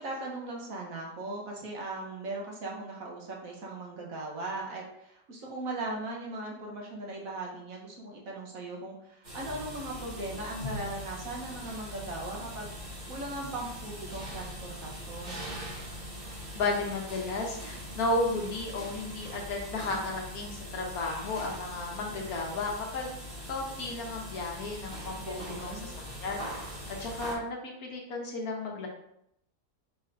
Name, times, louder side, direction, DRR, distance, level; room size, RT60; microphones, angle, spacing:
voice 1, 0.0-15.6 25.2-25.9, right 2 dB, 60° right, -2 dB, 1.2 m, -39 dB
sound 1, 9.2-27.3, equal, 35° right, 1.4 m, -41 dB
voice 2, 16.5-23.1 23.5-25.9 26.2-26.7 27.0-28.9, left 2 dB, 65° left, 0 dB, 1.2 m, -33 dB
5.0 x 4.1 x 2.5 m, 0.76 s
omnidirectional pair, 1.8 m